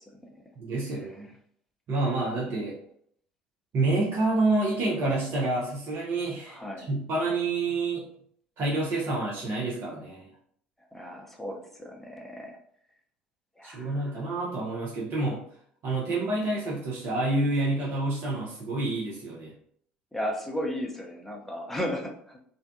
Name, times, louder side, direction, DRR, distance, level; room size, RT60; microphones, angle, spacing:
voice 1, 0.6-1.3 1.9-2.8 3.7-8.1 8.6-10.3 13.6-15.4 15.8-19.5, right 2 dB, 50° right, -5 dB, 0.7 m, -28 dB
voice 2, 6.5-6.9 10.9-12.6 13.6-14.2 20.1-22.4, equal, 5° left, 0 dB, 0.7 m, -35 dB
2.6 x 2.2 x 2.5 m, 0.64 s
hypercardioid pair, 60°, 5 cm